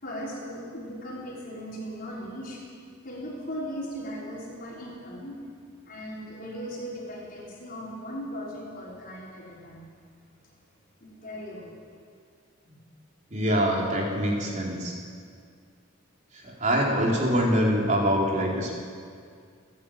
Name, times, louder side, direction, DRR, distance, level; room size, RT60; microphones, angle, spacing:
voice 1, 0.0-2.6 3.0-5.4 5.8-9.8 11.0-11.7, equal, 45° left, -5 dB, 5.4 m, -38 dB
voice 2, 13.3-14.9 16.3-18.7, equal, 35° right, -2 dB, 4.1 m, -24 dB
30.0 x 10.5 x 8.9 m, 2.1 s
head